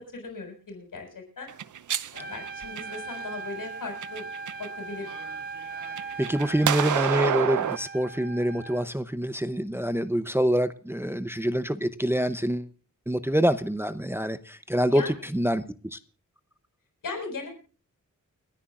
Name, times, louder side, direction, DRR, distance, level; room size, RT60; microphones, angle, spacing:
voice 1, 0.0-1.5 2.1-4.2 4.6-5.1 14.9-15.3 17.0-17.5, left 3 dB, 85° left, 6.9 m, -38 dB
sound 1, 1.5-3.2 3.8-4.7 5.1-7.8, right 9 dB, 70° right, 0.6 m, -29 dB
Trumpet, 2.2-8.9, right 4 dB, 30° right, 1.3 m, -39 dB
voice 2, 6.2-12.7 13.1-15.0 15.3-15.6 15.9-16.0, equal, 5° right, 0.7 m, -26 dB
29.5 x 9.9 x 2.5 m
wide cardioid pair, 150°, 32 cm